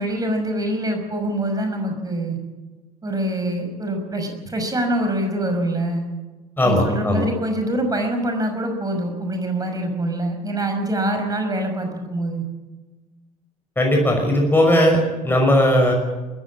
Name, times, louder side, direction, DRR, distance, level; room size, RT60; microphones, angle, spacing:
voice 1, 0.0-2.4 3.0-6.1 6.6-12.4, right 1 dB, 20° right, 4 dB, 5.8 m, -24 dB
voice 2, 6.6-7.3 13.8-15.9, left 1 dB, 10° left, 1 dB, 5.9 m, -17 dB
21.5 x 16.0 x 8.7 m, 1.2 s
figure-of-eight pair, 60°, 19 cm